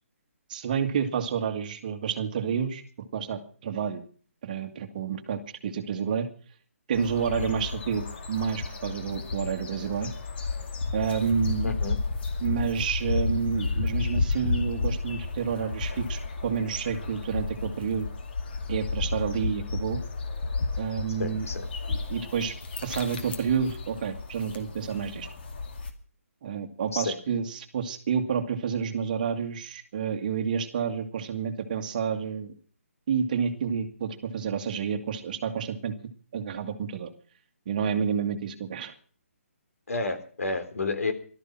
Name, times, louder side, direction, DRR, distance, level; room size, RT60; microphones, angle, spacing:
voice 1, 0.5-4.0 4.4-6.3 6.9-10.1 10.9-11.7 12.4-18.1 18.7-20.0 20.8-21.5 21.9-22.5 22.8-25.3 26.4-32.5 33.1-35.9 36.3-37.1 37.7-38.9, right 7 dB, 35° right, 7 dB, 2.0 m, -29 dB
sound 1, 6.9-25.9, left 4 dB, 45° left, 2.4 m, -32 dB
voice 2, 11.6-12.0 21.2-21.7 26.9-27.2 39.9-41.1, left 3 dB, 80° left, 8 dB, 3.7 m, -30 dB
17.5 x 13.0 x 5.9 m, 0.42 s
hypercardioid pair, 165°, 8 cm